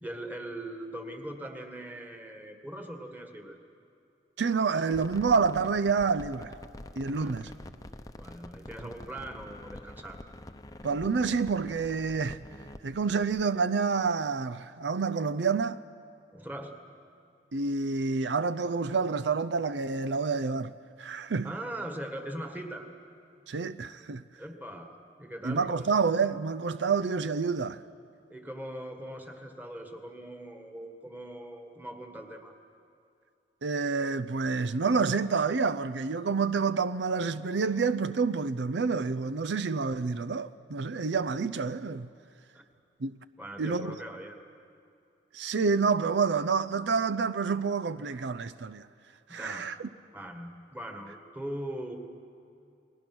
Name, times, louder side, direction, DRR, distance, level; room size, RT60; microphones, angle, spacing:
voice 1, 0.0-3.6 7.1-7.4 8.2-10.2 16.3-16.8 21.4-22.9 24.4-25.9 28.3-32.5 42.5-42.6 43.4-44.4 49.3-49.7 50.1-52.0, right 1 dB, 10° right, 1.8 m, -41 dB
voice 2, 4.4-6.5 7.0-7.5 10.8-12.4 12.8-15.8 17.5-20.7 21.0-21.5 23.5-24.2 25.4-27.8 33.6-42.1 43.0-43.1 43.6-44.0 45.3-48.9 49.3-49.9, right 5 dB, 85° right, 0.6 m, -28 dB
sound 1, 4.9-13.5, left 1 dB, 20° left, 0.7 m, -46 dB
29.5 x 19.5 x 6.2 m
head